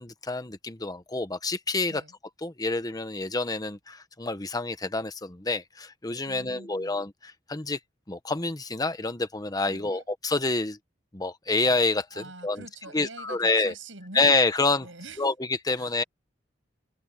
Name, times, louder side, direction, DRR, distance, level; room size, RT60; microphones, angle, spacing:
voice 1, 0.0-2.0 2.4-7.8 8.1-10.8 11.1-12.6 12.9-13.7 14.1-14.9 15.2-16.0, left 3 dB, 20° left, 1.0 m, -27 dB
voice 2, 6.3-7.0 9.7-10.1 12.1-14.3 14.8-15.3 15.7-16.0, right 3 dB, 85° right, 7.2 m, -45 dB
head